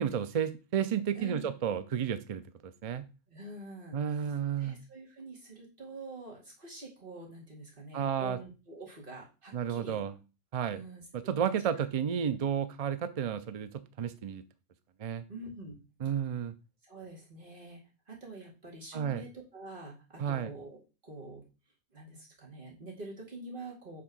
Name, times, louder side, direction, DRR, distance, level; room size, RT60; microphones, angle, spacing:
voice 1, 0.0-3.0 3.9-4.8 7.9-8.4 9.5-10.1 10.5-10.8 11.1-14.4 15.0-15.2 16.0-16.5 18.9-19.2 20.2-20.5, right 8 dB, 60° right, 13 dB, 0.3 m, -32 dB
voice 2, 1.1-1.5 3.3-4.0 4.6-10.0 10.7-11.5 15.3-15.8 16.8-21.5 21.9-24.0, right 2 dB, 45° right, -2 dB, 2.3 m, -46 dB
6.0 x 3.7 x 6.1 m, 0.31 s
omnidirectional pair, 1.3 m